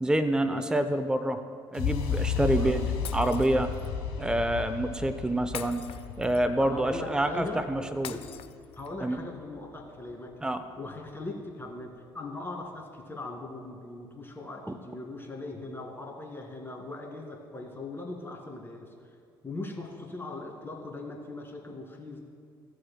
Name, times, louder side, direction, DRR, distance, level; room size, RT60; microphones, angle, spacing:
voice 1, 0.0-1.4 1.7-2.8 3.1-3.7 4.2-5.9 6.2-8.2 9.0-9.2 10.4-10.6, right 1 dB, 5° right, 10 dB, 0.6 m, -27 dB
sound 1, 1.7-9.7, left 6 dB, 75° left, 1.1 m, -34 dB
voice 2, 2.4-2.9 6.6-7.6 8.0-8.3 8.8-10.3 10.8-18.9 19.4-22.2, left 2 dB, 20° left, 1 dB, 2.1 m, -40 dB
Shatter, 3.0-3.9 5.5-6.6 8.0-9.0, left 11 dB, 50° left, 0.5 m, -43 dB
16.0 x 7.5 x 2.2 m, 2.2 s
figure-of-eight pair, 50°, 12 cm